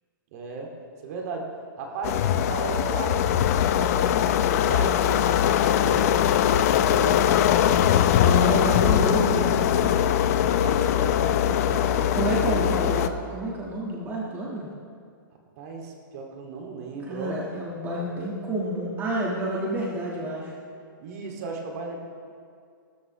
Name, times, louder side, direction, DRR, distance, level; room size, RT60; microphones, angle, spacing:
voice 1, 0.3-0.7 1.0-1.5 1.8-6.2 6.5-9.5 10.6-12.2 12.5-12.7 15.6-17.4 21.0-22.0, right 4 dB, 45° right, 1 dB, 2.3 m, -36 dB
sound 1, 2.0-13.1, left 10 dB, 45° left, 0.6 m, -21 dB
voice 2, 8.1-9.9 12.1-14.7 17.0-20.5, right 1 dB, 15° right, -4 dB, 1.5 m, -29 dB
18.0 x 13.5 x 3.1 m, 2.3 s
hypercardioid pair, 155°, 12 cm